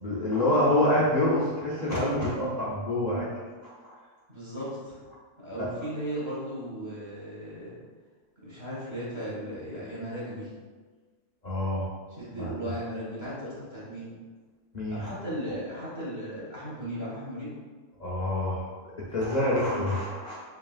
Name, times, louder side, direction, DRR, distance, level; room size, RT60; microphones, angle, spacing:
voice 1, 0.0-3.3 5.6-5.7 11.4-11.9 12.3-12.5 14.7-15.1 18.0-18.6 19.0-20.4, left 1 dB, 55° left, -7 dB, 0.4 m, -26 dB
voice 2, 4.3-5.0 5.4-7.8 8.4-10.5 12.1-14.2 14.9-17.5, equal, 20° right, -8 dB, 1.3 m, -36 dB
5.1 x 2.9 x 2.4 m, 1.4 s
omnidirectional pair, 1.7 m